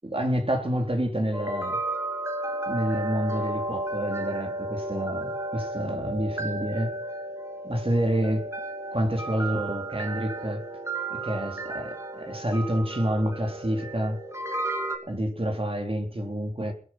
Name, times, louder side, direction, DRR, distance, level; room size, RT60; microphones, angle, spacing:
voice 1, 0.0-1.8 2.7-7.0 7.6-8.5 8.9-10.6 11.1-14.2 15.1-16.7, equal, 45° right, 4.0 m, -28 dB
sound 1, 1.3-15.0, right 2 dB, 20° right, 3.2 m, -33 dB
22.0 x 8.5 x 5.9 m
wide cardioid pair, 40°, 14 cm